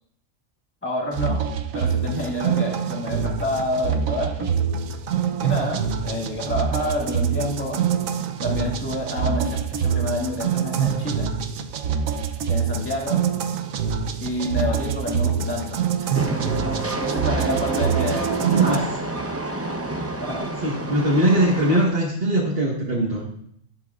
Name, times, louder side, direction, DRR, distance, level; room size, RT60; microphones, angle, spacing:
voice 1, 0.8-1.4 1.7-4.5 5.4-7.8 8.4-11.3 12.5-13.2 14.2-16.1 17.0-18.8 20.2-20.5, left 1 dB, 10° left, -3 dB, 2.0 m, -28 dB
sound 1, 1.1-18.8, right 7 dB, 85° right, 1.1 m, -25 dB
Train, 16.1-21.9, right 2 dB, 15° right, 0.6 m, -29 dB
voice 2, 18.5-18.9 20.6-23.2, right 1 dB, 50° right, -3 dB, 1.6 m, -21 dB
12.5 x 11.0 x 2.4 m, 0.71 s
omnidirectional pair, 1.4 m